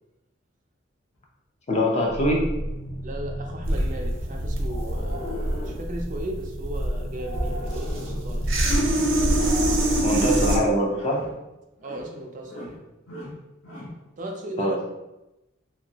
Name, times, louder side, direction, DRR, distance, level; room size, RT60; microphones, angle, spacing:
voice 1, 1.7-2.5 10.0-11.2 14.6-14.9, equal, 35° left, -1 dB, 0.5 m, -23 dB
sound 1, 2.1-10.6, equal, 50° left, 1.4 m, -34 dB
voice 2, 3.0-8.6 11.8-12.9 14.2-14.8, right 1 dB, 40° right, 1 dB, 0.4 m, -36 dB
sound 2, 3.6-10.6, right 1 dB, 70° right, 0.7 m, -24 dB
sound 3, 4.6-5.9 7.1-8.3 9.3-10.2 10.8-11.3 11.8-12.1 12.4-12.8 13.1-14.0, equal, 75° left, 0.9 m, -38 dB
2.8 x 2.6 x 2.7 m, 0.96 s
head